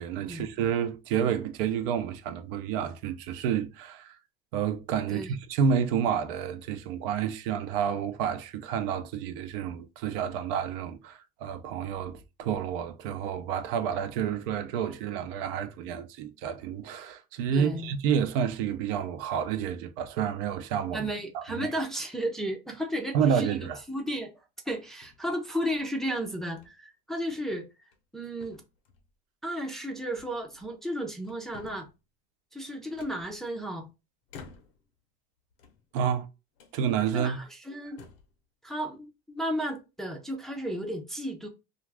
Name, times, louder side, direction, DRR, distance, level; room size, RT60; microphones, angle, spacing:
voice 1, 0.0-4.2 4.5-21.1 21.3-21.7 23.1-23.8 35.9-36.3 36.7-37.4, right 8 dB, 70° right, 0.6 m, -29 dB
voice 2, 17.5-17.9 20.9-24.3 24.7-27.7 28.1-28.6 29.4-31.9 32.5-33.9 37.1-38.0 38.6-41.5, equal, ahead, 0.4 m, -33 dB
sound 1, 23.8-24.2 25.0-25.8 26.5-26.7 27.1-27.3 27.8-28.1 28.4-29.1 30.1-30.9 31.2-32.0 33.0-33.8 34.3-34.9 35.5-36.2 36.6-36.8 37.4-37.5 37.9-38.4, left 5 dB, 80° left, 0.8 m, -52 dB
2.5 x 2.4 x 3.3 m
supercardioid pair, 115°, 29 cm